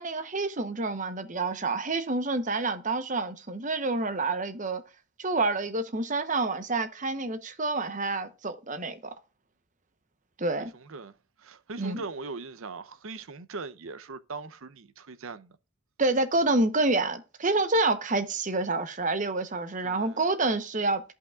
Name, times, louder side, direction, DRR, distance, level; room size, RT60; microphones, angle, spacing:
voice 1, 0.0-4.8 5.2-9.0 10.4-10.7 11.8-12.0 16.0-21.0, right 2 dB, 35° right, 0.8 m, -28 dB
voice 2, 10.6-15.5 19.8-20.3, right 3 dB, 65° right, 0.6 m, -40 dB
14.0 x 5.6 x 2.4 m
head